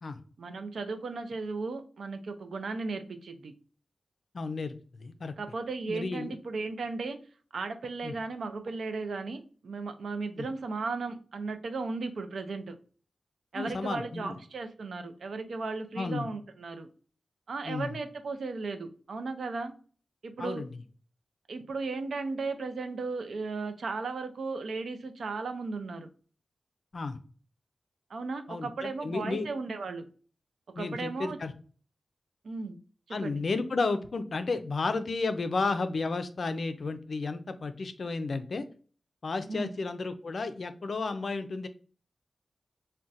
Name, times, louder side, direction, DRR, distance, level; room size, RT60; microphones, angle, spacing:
voice 1, 0.4-3.5 5.4-7.2 7.5-12.8 13.5-16.9 17.5-19.7 20.2-20.6 21.5-26.1 28.1-30.1 30.8-31.4 32.4-32.8 33.1-33.4 39.5-39.8, right 3 dB, 80° right, 7 dB, 0.4 m, -36 dB
voice 2, 4.3-5.3 5.9-6.3 8.0-8.1 10.4-10.5 13.5-14.4 16.0-16.3 17.6-17.9 20.4-20.7 26.9-27.2 28.5-29.5 30.7-31.5 33.1-38.6 39.2-41.7, left 3 dB, 60° left, 10 dB, 0.3 m, -32 dB
2.5 x 2.1 x 3.9 m, 0.41 s
wide cardioid pair, 100°, 0 cm